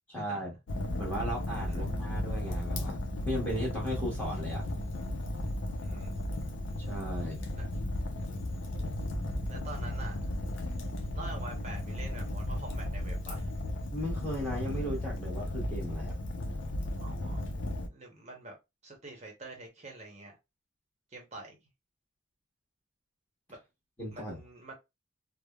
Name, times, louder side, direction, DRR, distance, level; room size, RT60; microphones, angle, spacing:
voice 1, 0.1-0.5 1.0-3.0 3.2-4.6 6.9-7.4 13.9-16.1 24.0-24.4, equal, 10° left, 1.0 m, -36 dB
Fire, 0.7-17.9, left 1 dB, 75° left, 0.5 m, -35 dB
voice 2, 5.8-6.1 7.5-7.7 9.4-10.2 11.1-13.5 17.0-17.5 17.9-18.5 18.8-20.4 21.1-21.6 23.5-23.6 24.1-24.7, right 2 dB, 35° right, 0.7 m, -46 dB
3.3 x 2.0 x 2.2 m
head